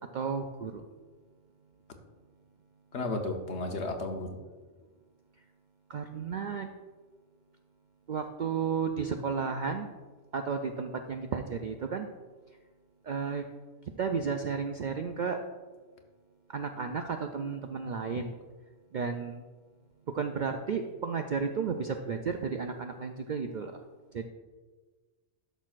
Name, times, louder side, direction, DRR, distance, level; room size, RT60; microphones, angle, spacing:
voice 1, 0.1-0.8 5.9-6.7 8.1-9.9 10.3-12.1 13.0-13.4 14.0-15.4 16.5-18.3 18.9-19.4 20.1-23.8 24.1-24.3, right 5 dB, 65° right, 5 dB, 0.4 m, -33 dB
voice 2, 2.9-4.4, left 2 dB, 65° left, 4 dB, 1.1 m, -33 dB
11.5 x 6.2 x 2.4 m, 1.4 s
omnidirectional pair, 1.3 m